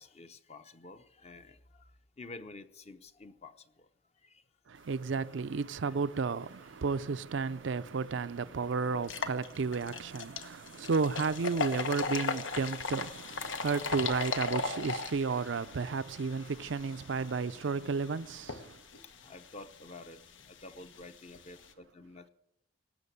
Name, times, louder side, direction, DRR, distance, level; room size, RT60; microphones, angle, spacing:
voice 1, 0.0-1.9 2.2-3.9 4.2-4.4 5.8-5.9 16.6-16.7 19.0-22.3, left 2 dB, 35° left, 0.8 m, -50 dB
voice 2, 4.7-18.8, right 4 dB, 75° right, 0.5 m, -33 dB
sound 1, 7.7-7.8 8.2-8.3 8.9-21.7, left 4 dB, 85° left, 1.2 m, -39 dB
18.5 x 7.3 x 8.2 m
head